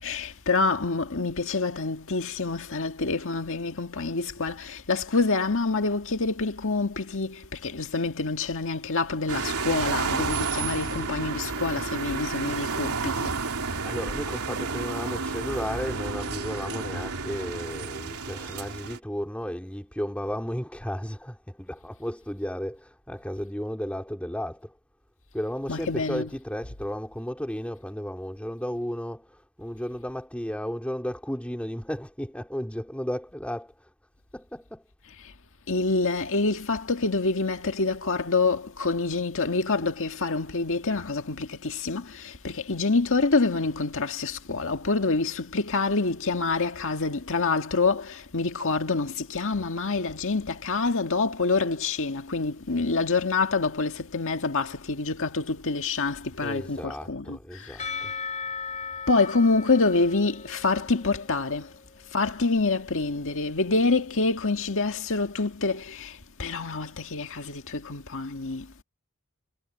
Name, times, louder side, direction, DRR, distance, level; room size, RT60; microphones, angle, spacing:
voice 1, 0.0-13.3 25.7-26.3 35.7-58.1 59.1-61.7 62.1-68.8, left 3 dB, 60° left, 1.9 m, -27 dB
sound 1, 9.3-19.0, right 4 dB, 85° right, 3.2 m, -31 dB
voice 2, 13.8-24.8 25.3-33.9 34.3-34.9 56.4-58.1, equal, 5° left, 3.7 m, -34 dB
Percussion / Church bell, 57.8-62.1, left 5 dB, 30° left, 5.2 m, -37 dB
head